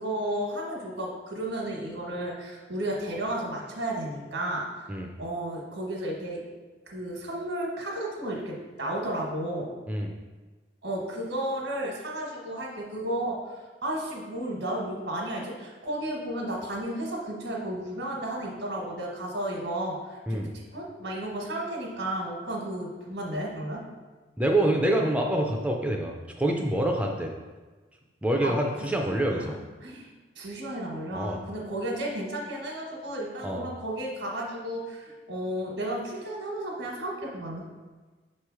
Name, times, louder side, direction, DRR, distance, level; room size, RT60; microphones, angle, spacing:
voice 1, 0.0-4.7 5.2-6.4 6.9-9.7 10.8-13.4 13.8-23.8 28.4-28.6 28.9-29.0 29.2-29.5 29.8-37.6, right 1 dB, 80° right, -3 dB, 1.1 m, -33 dB
voice 2, 24.4-26.1 26.4-27.3 28.2-29.6 31.1-31.4 33.4-33.7, right 1 dB, 5° right, 1 dB, 0.4 m, -26 dB
6.7 x 3.1 x 4.7 m, 1.3 s
head